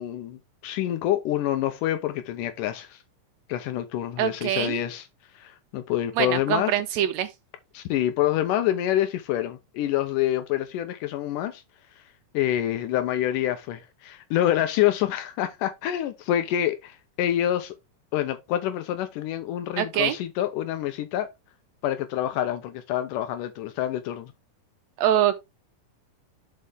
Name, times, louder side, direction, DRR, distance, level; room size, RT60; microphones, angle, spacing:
voice 1, 0.0-3.0 3.5-5.0 5.4-6.7 7.7-11.6 12.3-17.7 18.1-21.3 21.8-24.3, left 12 dB, 80° left, 2.3 m, -27 dB
voice 2, 4.2-4.8 6.2-7.3 19.8-20.2 25.0-25.4, right 11 dB, 85° right, 1.5 m, -24 dB
7.3 x 5.6 x 3.5 m
omnidirectional pair, 3.7 m